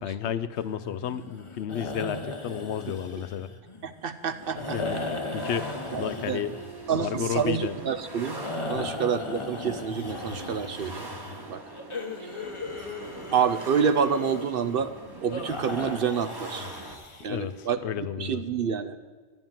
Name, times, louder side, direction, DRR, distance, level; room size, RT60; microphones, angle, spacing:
voice 1, 0.0-3.5 4.7-6.6 6.9-7.8 8.7-9.0 17.3-18.4, left 9 dB, 70° left, 14 dB, 0.8 m, -32 dB
sound 1, 0.6-17.5, left 2 dB, 30° left, 0.9 m, -37 dB
voice 2, 3.8-4.8 5.9-6.4 6.9-8.4 8.7-11.0 11.5-11.6 13.3-14.9 15.2-16.7 17.2-17.8 18.2-19.0, right 7 dB, 60° right, 10 dB, 0.7 m, -27 dB
sound 2, 4.4-17.0, right 3 dB, 20° right, 1.1 m, -43 dB
11.0 x 9.1 x 7.3 m, 1.5 s
omnidirectional pair, 1.2 m